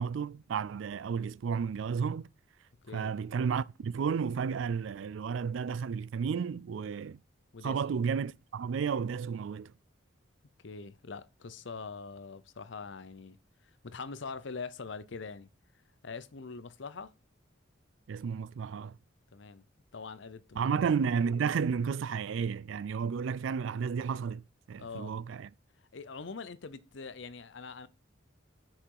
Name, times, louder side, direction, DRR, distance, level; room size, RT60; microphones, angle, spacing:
voice 1, 0.0-2.3 2.9-7.2 7.6-9.7 18.1-19.0 20.6-24.4 24.7-25.5, right 6 dB, 75° right, 0.3 m, -32 dB
voice 2, 10.6-13.4 13.6-15.5 16.0-17.1 19.3-19.6 19.9-20.8 24.8-25.1 25.9-27.9, left 4 dB, 65° left, 0.6 m, -43 dB
6.4 x 5.9 x 4.7 m
head